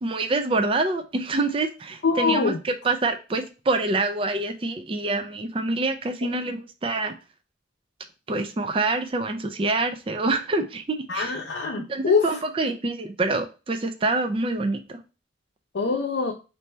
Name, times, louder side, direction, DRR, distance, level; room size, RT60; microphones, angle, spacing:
voice 1, 0.0-7.1 8.3-11.3 11.9-15.0, right 2 dB, 30° right, 7 dB, 0.4 m, -26 dB
voice 2, 2.0-2.6 6.2-6.4 11.1-12.4 15.7-16.3, left 4 dB, 85° left, -1 dB, 0.6 m, -24 dB
3.3 x 2.7 x 4.3 m, 0.32 s
head